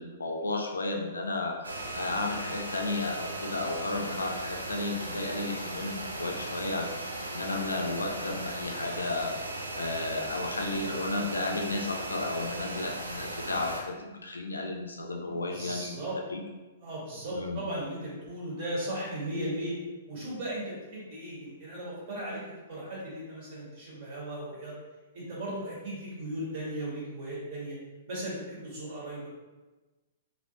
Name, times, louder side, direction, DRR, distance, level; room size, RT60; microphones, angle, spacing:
voice 1, 0.0-9.4 9.7-15.9 16.3-16.4 17.3-17.6, left 2 dB, 75° left, 2 dB, 0.4 m, -33 dB
sound 1, 1.6-13.8, right 1 dB, 70° right, 0.5 m, -37 dB
voice 2, 15.3-16.2 16.8-19.8 20.1-24.8 25.1-27.8 28.1-29.3, right 1 dB, 45° right, -6 dB, 1.5 m, -37 dB
3.1 x 2.6 x 2.8 m, 1.2 s
figure-of-eight pair, 110°, 0 cm